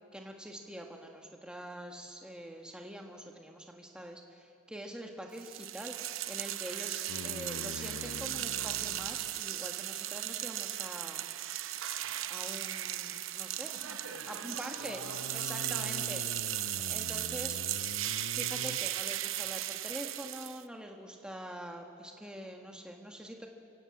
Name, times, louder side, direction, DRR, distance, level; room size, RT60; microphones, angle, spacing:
voice 1, 0.1-11.2 11.8-12.0 12.3-13.7 14.3-15.0 15.3-16.2 16.9-17.9 18.3-23.5, right 1 dB, 5° right, 1 dB, 1.4 m, -45 dB
sound 1, 5.4-20.6, right 13 dB, 60° right, 0.7 m, -37 dB
sound 2, 7.1-9.4 14.8-18.8, left 4 dB, 80° left, 0.6 m, -45 dB
voice 2, 13.7-16.7, right 1 dB, 75° right, 2 dB, 5.1 m, -48 dB
28.5 x 16.5 x 8.6 m, 2.4 s
head